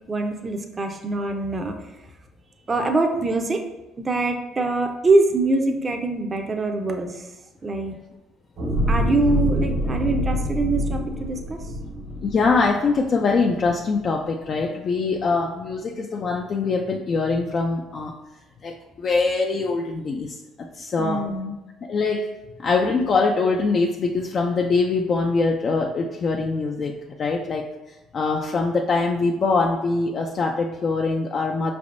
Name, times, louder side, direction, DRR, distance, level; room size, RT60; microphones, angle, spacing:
voice 1, 0.1-1.7 2.7-3.6 4.0-7.3 7.6-7.9 8.9-11.6 21.0-21.5, right 2 dB, 30° right, 4 dB, 0.6 m, -23 dB
sound 1, 8.6-13.1 13.6-13.7, equal, 80° right, 1.3 m, -25 dB
voice 2, 12.2-18.2 18.6-20.4 20.8-21.2 21.8-22.3 22.6-26.9 27.2-27.7 28.1-31.7, left 4 dB, 45° left, 1 dB, 0.4 m, -23 dB
4.9 x 3.4 x 2.6 m, 1.0 s
supercardioid pair, 70°, 0 cm